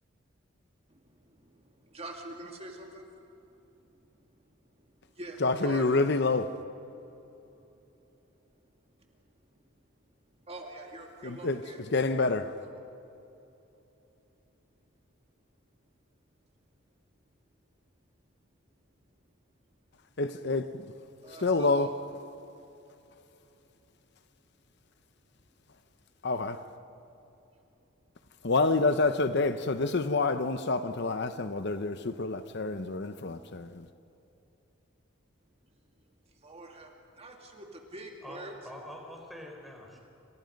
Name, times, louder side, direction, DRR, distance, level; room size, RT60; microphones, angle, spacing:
voice 1, 0.9-6.0 9.0-9.6 10.4-11.8 12.4-12.8 21.2-21.9 36.3-36.9 37.2-38.5, right 1 dB, 30° right, 2.1 m, -46 dB
voice 2, 5.4-6.6 11.2-11.6 11.9-12.5 20.2-20.8 21.4-22.0 26.2-26.6 28.4-33.9, left 3 dB, 55° left, 0.8 m, -27 dB
voice 3, 38.2-40.0, equal, ahead, 4.4 m, -45 dB
28.0 x 27.5 x 5.3 m
head